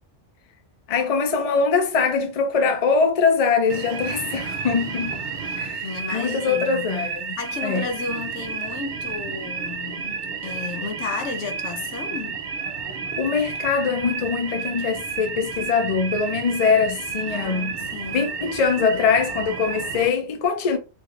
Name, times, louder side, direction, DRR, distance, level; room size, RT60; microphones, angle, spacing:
voice 1, 0.9-5.2 5.5-5.9 6.1-7.3 7.6-7.9 13.1-17.7 18.1-20.8, left 5 dB, 45° left, 0.5 m, -22 dB
sound 1, 3.7-20.1, right 5 dB, 50° right, 0.6 m, -31 dB
voice 2, 5.4-7.0 7.4-12.4 17.3-18.3, left 5 dB, 80° left, 0.9 m, -33 dB
3.1 x 2.7 x 2.5 m
omnidirectional pair, 1.3 m